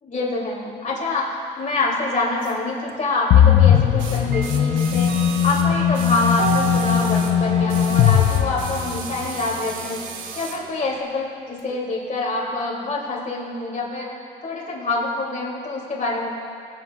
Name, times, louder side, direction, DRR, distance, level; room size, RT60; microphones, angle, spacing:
voice 1, 0.0-10.0 10.3-14.1 14.4-16.3, left 2 dB, 40° left, -3 dB, 2.7 m, -26 dB
sound 1, 2.4-2.5 4.0-7.4 7.7-10.6 11.6-11.7, right 6 dB, 80° right, 0.9 m, -36 dB
Clock, 2.9-3.0 4.2-11.0, right 7 dB, 55° right, 0.7 m, -34 dB
sound 2, 3.3-9.3, left 9 dB, 75° left, 0.5 m, -18 dB
20.5 x 7.5 x 2.4 m, 2.4 s
cardioid pair, 90°, 20 cm